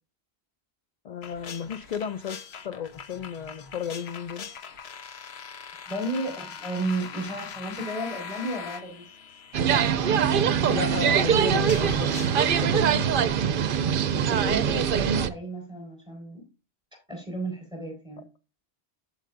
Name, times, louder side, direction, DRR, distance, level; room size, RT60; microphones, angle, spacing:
voice 1, 1.0-4.5 10.7-13.2, left 7 dB, 50° left, 0.6 m, -34 dB
sound 1, 1.2-12.6, left 6 dB, 80° left, 1.1 m, -42 dB
voice 2, 5.9-9.0 14.3-16.4 17.1-18.2, right 1 dB, 5° right, 4.7 m, -33 dB
sound 2, 9.5-15.3, right 8 dB, 60° right, 0.7 m, -23 dB
14.0 x 5.0 x 2.6 m
omnidirectional pair, 1.1 m